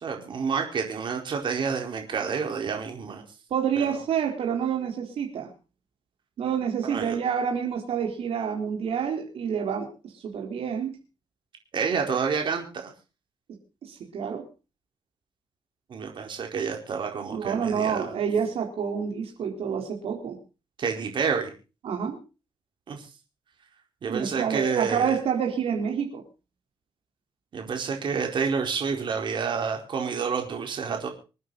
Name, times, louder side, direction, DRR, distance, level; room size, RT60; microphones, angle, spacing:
voice 1, 0.0-3.2 3.8-3.9 6.8-7.1 11.7-12.9 15.9-18.2 20.8-21.5 22.9-23.1 24.0-25.2 27.5-31.1, right 6 dB, 55° right, 2 dB, 4.5 m, -29 dB
voice 2, 3.5-5.5 6.4-9.9 10.1-11.0 13.5-14.4 17.3-20.4 21.8-22.2 24.1-26.2, right 7 dB, 80° right, 1 dB, 4.1 m, -28 dB
26.5 x 9.4 x 4.1 m, 0.33 s
wide cardioid pair, 145°, 10 cm